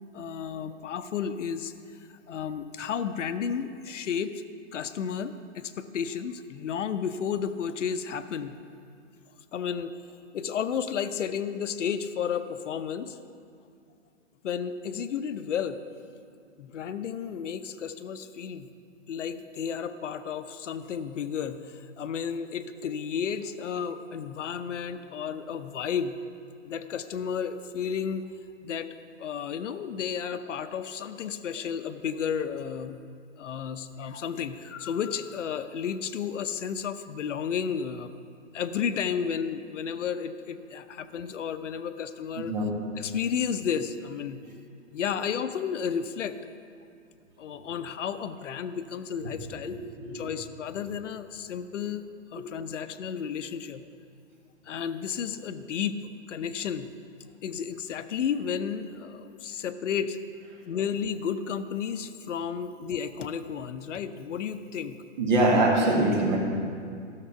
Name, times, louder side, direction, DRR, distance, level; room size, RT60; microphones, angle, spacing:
voice 1, 0.1-1.7 2.3-4.4 4.7-8.6 9.5-10.0 10.3-13.2 14.4-15.8 16.6-18.7 19.1-26.2 26.6-28.3 28.6-28.9 29.2-33.0 33.4-38.1 38.5-42.5 43.0-44.4 44.9-46.4 47.4-49.8 50.1-52.0 52.3-53.8 54.7-56.9 57.4-60.2 60.7-65.0, left 7 dB, 75° left, 11 dB, 0.7 m, -32 dB
voice 2, 42.4-42.7 49.6-50.3 65.2-66.4, right 2 dB, 40° right, -2 dB, 2.0 m, -24 dB
14.0 x 6.7 x 5.7 m, 2.3 s
hypercardioid pair, 175°, 37 cm